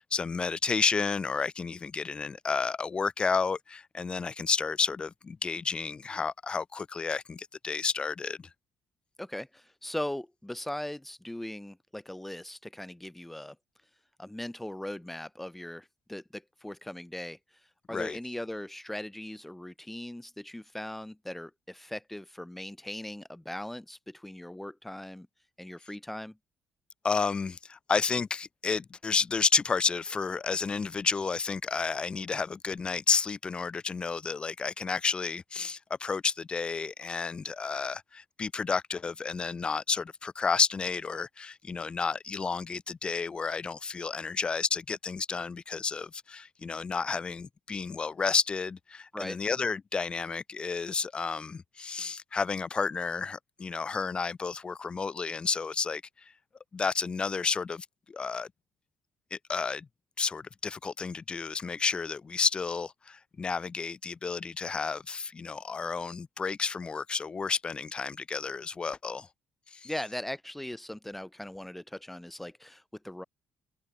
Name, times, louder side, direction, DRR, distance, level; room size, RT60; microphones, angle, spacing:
voice 1, 0.0-8.5 17.9-18.2 27.0-56.0 56.7-58.5 59.3-59.9 60.2-69.3 69.7-69.9, left 5 dB, 25° left, 1.7 m, -31 dB
voice 2, 9.2-13.5 14.2-25.3 25.6-26.3 49.1-49.4 69.8-73.2, left 1 dB, 5° left, 3.0 m, -39 dB
cardioid pair, 155°, 4 cm